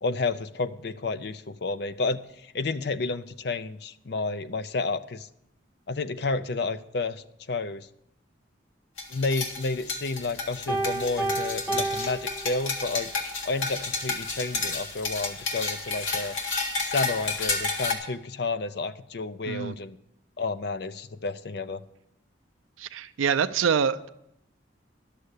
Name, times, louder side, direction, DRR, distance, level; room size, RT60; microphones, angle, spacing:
voice 1, 0.0-5.3 5.9-7.9 9.1-13.1 13.4-16.4 16.8-20.0 20.4-21.8, left 3 dB, 55° left, 12 dB, 0.5 m, -31 dB
sound 1, 9.0-17.9, left 3 dB, 85° left, 1.8 m, -31 dB
Piano, 10.7-13.1, right 2 dB, 15° left, 2.5 m, -31 dB
voice 2, 22.8-24.1, right 7 dB, 85° right, 11 dB, 0.4 m, -25 dB
11.5 x 6.6 x 8.2 m, 0.79 s
head